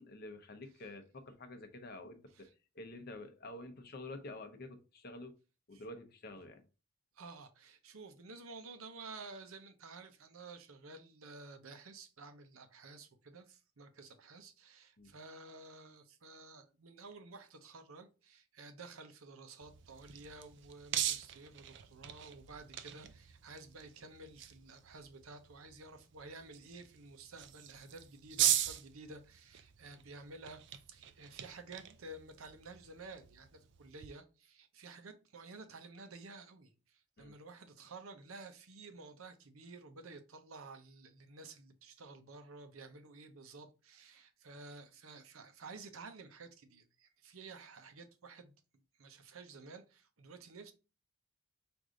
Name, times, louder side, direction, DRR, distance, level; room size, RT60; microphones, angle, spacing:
voice 1, 0.0-2.5 2.7-5.3 5.7-6.6 15.0-15.1 37.2-37.3, left 2 dB, 45° left, 0.7 m, -49 dB
voice 2, 7.1-30.6 30.9-50.7, right 3 dB, 80° right, 0.7 m, -52 dB
sound 1, 19.6-34.1, right 11 dB, 55° right, 0.4 m, -40 dB
4.8 x 2.6 x 3.7 m
head